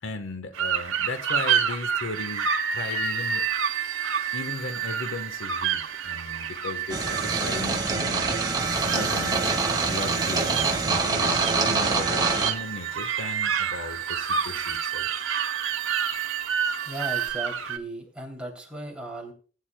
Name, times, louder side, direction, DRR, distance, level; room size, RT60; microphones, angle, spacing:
voice 1, 0.0-3.5 4.3-8.4 8.9-9.5 9.9-15.1, left 2 dB, 75° left, 8 dB, 1.2 m, -36 dB
sound 1, 0.5-17.8, right 7 dB, 85° right, 0.9 m, -30 dB
Ambience Wind Chimes A, 2.1-17.3, right 11 dB, 50° right, 4.0 m, -35 dB
sound 2, 6.9-12.5, right 4 dB, 20° right, 1.7 m, -25 dB
voice 2, 16.8-19.3, right 1 dB, 5° right, -1 dB, 2.8 m, -36 dB
19.5 x 9.7 x 2.2 m, 0.38 s
head